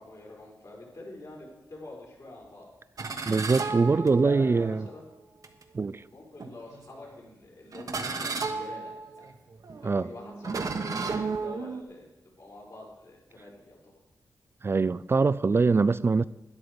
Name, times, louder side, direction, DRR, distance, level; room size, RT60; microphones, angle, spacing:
voice 1, 0.0-2.7 3.9-5.0 6.1-9.3 9.8-12.1 12.4-13.8, left 2 dB, 60° left, 5.2 m, -45 dB
sound 1, 3.0-4.6 5.4-5.6 6.4-6.9 7.7-11.8, right 4 dB, 60° right, 1.3 m, -34 dB
voice 2, 3.3-4.8 5.7-6.0 9.8-10.1 14.6-16.2, right 4 dB, 35° right, 0.4 m, -23 dB
12.5 x 10.0 x 5.2 m
cardioid pair, 60°, 7 cm